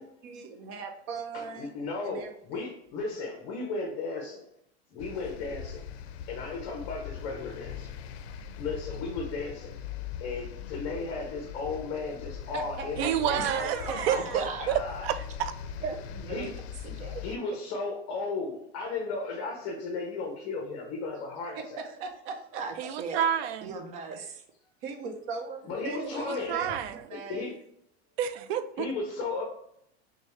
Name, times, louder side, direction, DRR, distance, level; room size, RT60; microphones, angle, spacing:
voice 1, 0.0-1.8 2.0-2.8 12.5-14.5 21.5-22.6 24.1-24.2 24.8-27.5, right 5 dB, 40° right, 4 dB, 0.8 m, -39 dB
voice 2, 1.3-4.5 4.9-5.8 6.3-7.9 8.6-9.8 10.2-15.1 16.3-16.5 17.2-21.9 25.6-26.6 27.1-27.5 28.8-29.4, left 3 dB, 45° left, 1 dB, 0.9 m, -35 dB
sound 1, 5.0-17.4, left 8 dB, 80° left, 0.5 m, -41 dB
voice 3, 13.0-15.5 22.8-23.7 26.0-27.0 28.2-28.9, right 9 dB, 70° right, 11 dB, 0.5 m, -30 dB
voice 4, 13.8-14.7 15.8-16.5 16.8-17.2 22.6-23.3 23.6-24.4, right 5 dB, 25° right, 5 dB, 0.4 m, -37 dB
6.3 x 2.3 x 3.1 m, 0.74 s
supercardioid pair, 160°, 32 cm